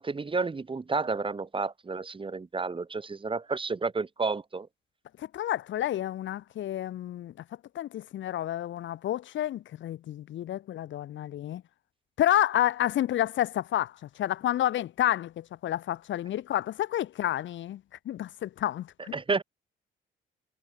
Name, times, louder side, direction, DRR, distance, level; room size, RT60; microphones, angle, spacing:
voice 1, 0.0-4.7 19.1-19.4, right 4 dB, 25° right, 1.9 m, -31 dB
voice 2, 5.2-7.3 7.7-11.6 12.2-19.1, left 12 dB, 70° left, 1.4 m, -30 dB
cardioid pair, 90°, 20 cm